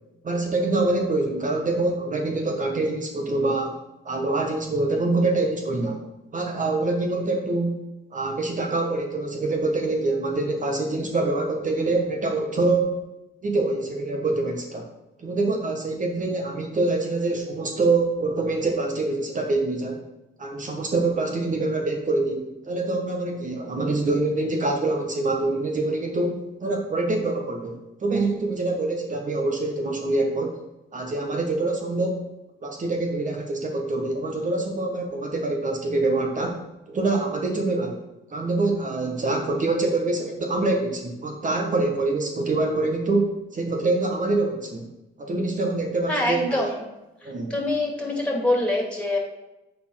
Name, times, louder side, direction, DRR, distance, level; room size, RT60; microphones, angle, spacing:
voice 1, 0.2-3.8 4.0-6.0 6.3-7.8 8.1-12.9 13.4-14.9 15.2-20.0 20.4-30.6 30.9-32.2 32.6-36.6 36.9-38.0 38.3-44.9 45.2-46.7 47.2-47.5, right 2 dB, 40° right, 2 dB, 1.4 m, -25 dB
voice 2, 46.1-46.8 47.2-49.2, left 1 dB, 5° left, 0 dB, 2.7 m, -25 dB
8.5 x 4.5 x 5.8 m, 0.98 s
cardioid pair, 90°, 20 cm